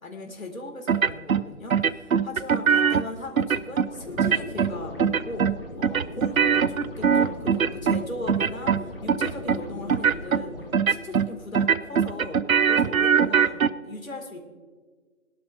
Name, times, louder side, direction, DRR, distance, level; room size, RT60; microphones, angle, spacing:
voice 1, 0.0-10.5 10.9-14.4, left 2 dB, 65° left, 3 dB, 2.4 m, -38 dB
sound 1, 0.9-1.4 1.7-3.0 3.4-3.9 4.2-4.7 5.0-5.6 5.8-8.0 8.3-8.8 9.1-9.6 9.9-10.4 10.7-11.3 11.5-13.7, right 7 dB, 65° right, 0.6 m, -21 dB
sound 2, 3.6-10.8, left 2 dB, 40° left, 1.1 m, -39 dB
20.0 x 12.0 x 2.6 m, 1.5 s
figure-of-eight pair, 170°, 44 cm